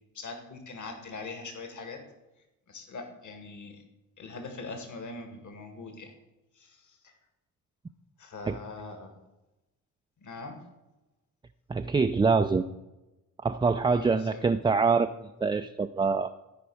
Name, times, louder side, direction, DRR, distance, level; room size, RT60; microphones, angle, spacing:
voice 1, 0.1-2.0 2.7-3.8 4.2-6.1 6.6-7.1 8.2-9.2 10.2-10.6 13.8-14.4, left 3 dB, 50° left, 5 dB, 2.0 m, -42 dB
voice 2, 11.7-12.7 13.4-16.3, right 4 dB, 15° right, 7 dB, 0.4 m, -25 dB
14.0 x 5.1 x 4.8 m, 1.0 s
hypercardioid pair, 50°, 40 cm